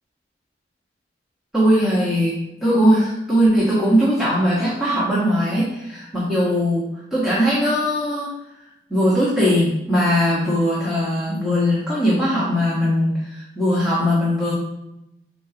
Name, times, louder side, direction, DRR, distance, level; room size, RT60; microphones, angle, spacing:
voice 1, 1.5-6.8 7.1-8.3 8.9-14.5, equal, ahead, -9 dB, 1.3 m, -19 dB
7.4 x 4.5 x 2.9 m, 0.88 s
head